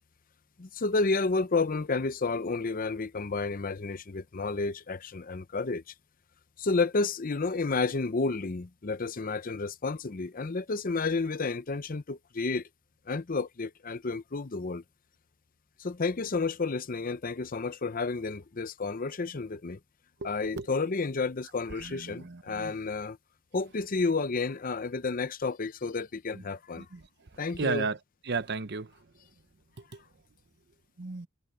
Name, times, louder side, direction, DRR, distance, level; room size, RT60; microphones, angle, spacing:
voice 1, 0.6-5.8 6.6-12.7 13.1-14.8 15.8-19.8 20.2-23.2 23.5-26.9 27.4-27.9, left 3 dB, 40° left, 0.7 m, -31 dB
voice 2, 21.8-22.7 26.3-26.4 26.8-27.0 27.6-28.0 28.3-28.9 31.0-31.3, right 4 dB, 50° right, 0.8 m, -33 dB
head